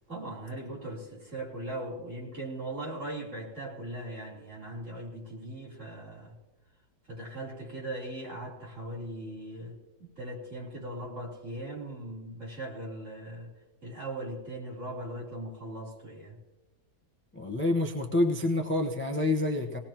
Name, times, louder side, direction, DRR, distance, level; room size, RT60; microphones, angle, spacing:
voice 1, 0.1-6.3 7.1-13.5 13.8-16.4, right 1 dB, 55° right, -5 dB, 4.1 m, -39 dB
voice 2, 17.3-19.8, left 2 dB, 10° left, 3 dB, 0.9 m, -27 dB
20.5 x 18.5 x 3.0 m, 1.0 s
omnidirectional pair, 1.6 m